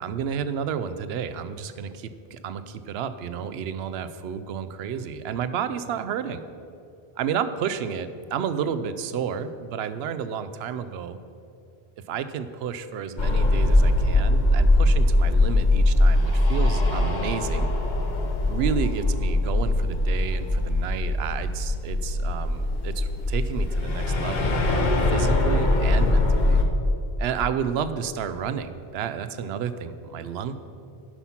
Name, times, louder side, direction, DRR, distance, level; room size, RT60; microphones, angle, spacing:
voice 1, 0.0-6.4 7.2-11.2 12.1-17.7 18.5-26.6 27.2-30.6, right 7 dB, 80° right, 12 dB, 0.8 m, -31 dB
sound 1, 13.2-26.6, left 1 dB, 50° left, 0.9 m, -22 dB
11.0 x 5.8 x 5.7 m, 2.6 s
omnidirectional pair, 1.1 m